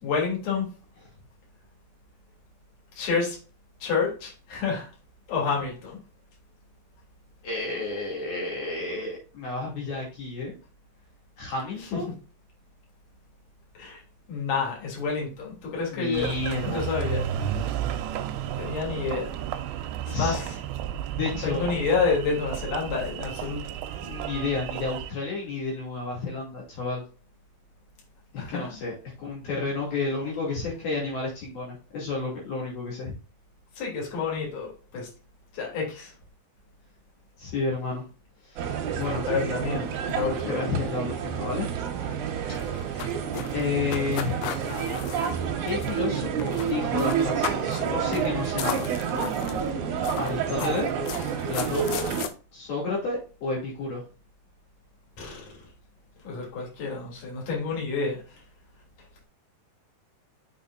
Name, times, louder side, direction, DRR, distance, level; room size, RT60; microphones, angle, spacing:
voice 1, 0.0-0.7 2.9-3.4 3.8-4.9 5.3-6.0 11.9-12.0 13.7-14.0 14.3-16.3 16.6-17.7 18.6-19.3 20.0-20.6 21.4-23.8 28.4-28.7 33.8-35.1 35.5-36.1 39.3-40.5 55.2-55.5 56.2-58.4, left 5 dB, 40° left, -3 dB, 3.8 m, -29 dB
voice 2, 7.4-10.6 11.4-12.1 15.9-16.9 20.1-20.4 21.2-21.6 24.0-27.0 28.3-33.1 37.4-38.1 38.4-39.3 40.5-41.7 43.5-44.4 45.2-48.9 50.1-50.9 51.4-51.9 52.5-54.0, left 3 dB, 55° left, -4 dB, 4.2 m, -31 dB
Engine, 16.1-25.1, right 9 dB, 80° right, 2.5 m, -32 dB
sound 1, 38.6-52.3, right 7 dB, 65° right, 2.0 m, -29 dB
sound 2, 42.5-46.1 46.4-46.7 47.0-47.8 48.1-48.3 48.6-49.7 50.0-52.3, left 10 dB, 85° left, 3.3 m, -35 dB
7.4 x 6.8 x 2.6 m, 0.35 s
omnidirectional pair, 5.4 m